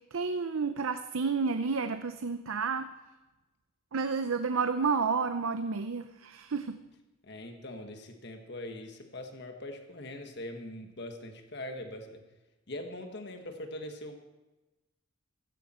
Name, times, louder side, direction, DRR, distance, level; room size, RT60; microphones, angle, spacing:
voice 1, 0.0-2.9 3.9-6.8, right 5 dB, 80° right, 9 dB, 0.6 m, -30 dB
voice 2, 7.2-12.2 12.7-14.2, left 1 dB, 55° left, 5 dB, 1.6 m, -42 dB
16.5 x 14.5 x 4.4 m, 1.1 s
head